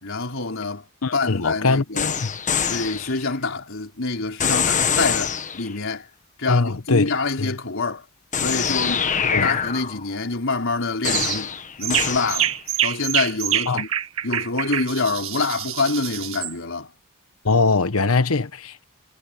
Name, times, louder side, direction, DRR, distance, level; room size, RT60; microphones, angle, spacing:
voice 1, 0.0-0.8 1.1-2.2 2.7-6.0 6.4-8.0 8.4-9.0 9.4-11.5 11.8-12.5 12.8-13.9 14.2-16.9, left 3 dB, 65° left, 4.6 m, -26 dB
voice 2, 1.0-2.3 6.5-7.1 7.4-7.6 9.2-9.5 13.7-13.8 17.4-18.8, left 3 dB, 85° left, 1.2 m, -22 dB
sound 1, 2.0-3.2 4.4-5.8 8.3-10.2 11.0-12.6, left 7 dB, 35° left, 1.4 m, -24 dB
sound 2, 11.0-11.4 11.8-16.5, right 11 dB, 70° right, 2.0 m, -26 dB
head